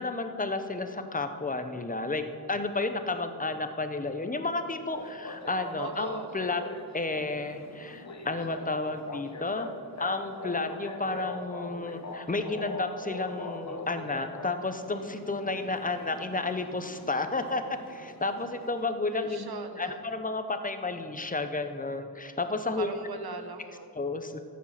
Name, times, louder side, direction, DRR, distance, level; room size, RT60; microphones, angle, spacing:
voice 1, 0.0-6.6 6.9-9.7 10.0-17.6 17.9-19.5 19.8-22.9 23.9-24.4, left 3 dB, 20° left, 8 dB, 0.8 m, -32 dB
sound 1, 4.9-19.2, left 2 dB, 45° left, 1.1 m, -43 dB
voice 2, 5.8-6.3 19.1-20.0 22.7-23.9, right 5 dB, 70° right, 7 dB, 1.0 m, -40 dB
13.0 x 7.5 x 5.7 m, 2.3 s
wide cardioid pair, 90°, 39 cm